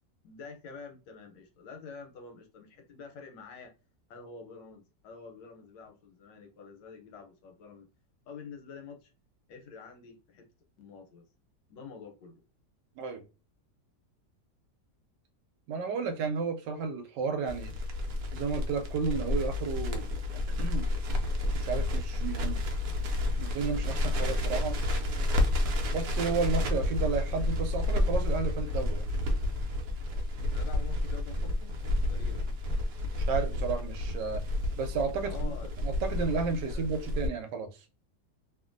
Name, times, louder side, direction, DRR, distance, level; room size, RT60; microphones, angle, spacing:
voice 1, 0.2-3.7 4.1-7.9 8.3-9.1 9.5-10.5 10.8-11.2 11.7-12.4 30.5-31.7 32.1-32.4 35.2-35.8 36.7-36.9, left 5 dB, 90° left, 1.4 m, -47 dB
voice 2, 15.7-17.7 18.3-20.1 20.6-20.9 21.5-22.6 23.4-24.8 25.9-29.0 33.2-34.4 34.8-35.5 35.8-37.7, right 5 dB, 85° right, 1.2 m, -32 dB
Crackle, 17.5-37.3, left 2 dB, 65° right, 1.0 m, -30 dB
2.9 x 2.5 x 2.5 m
omnidirectional pair, 1.9 m